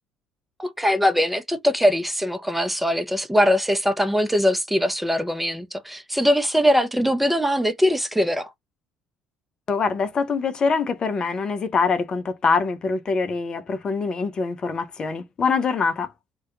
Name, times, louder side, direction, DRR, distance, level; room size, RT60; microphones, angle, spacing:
voice 1, 0.6-8.5, equal, 5° right, 0.6 m, -21 dB
voice 2, 9.7-16.1, left 4 dB, 40° left, 0.5 m, -24 dB
2.2 x 2.2 x 2.7 m
hypercardioid pair, 55°, 2 cm